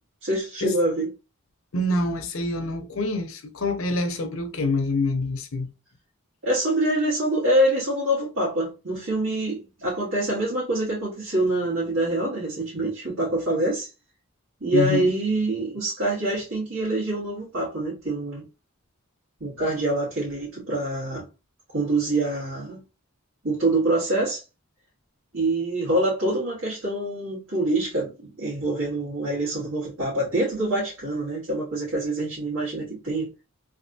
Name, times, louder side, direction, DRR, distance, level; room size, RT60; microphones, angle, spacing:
voice 1, 0.2-1.1 6.4-13.9 14.6-18.4 19.4-21.2 21.7-22.8 23.4-24.4 25.3-33.3, right 1 dB, 75° right, 1.7 m, -25 dB
voice 2, 1.7-5.7 14.7-15.1, left 2 dB, 70° left, 0.7 m, -26 dB
3.4 x 2.5 x 2.6 m
head